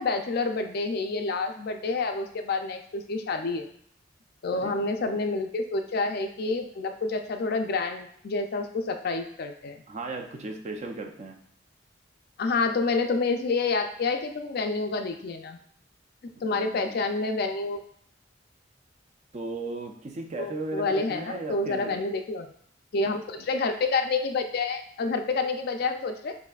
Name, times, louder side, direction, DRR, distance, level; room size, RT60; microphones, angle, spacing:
voice 1, 0.0-3.7 4.4-9.8 12.4-15.6 16.2-17.8 20.4-22.5 22.9-26.4, left 3 dB, 55° left, 6 dB, 0.4 m, -28 dB
voice 2, 9.9-11.4 16.4-17.0 19.3-22.0 23.4-23.5, right 2 dB, 40° right, 3 dB, 0.5 m, -36 dB
6.7 x 2.6 x 2.4 m, 0.65 s
head